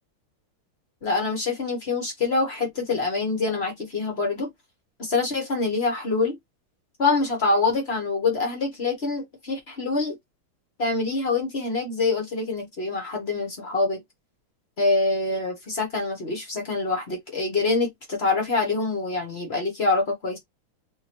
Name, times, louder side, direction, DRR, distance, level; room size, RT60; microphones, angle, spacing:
voice 1, 1.0-4.5 5.0-6.3 7.0-10.2 10.8-14.0 14.8-20.4, left 3 dB, 40° left, 1.1 m, -25 dB
3.8 x 2.8 x 2.9 m
omnidirectional pair, 2.3 m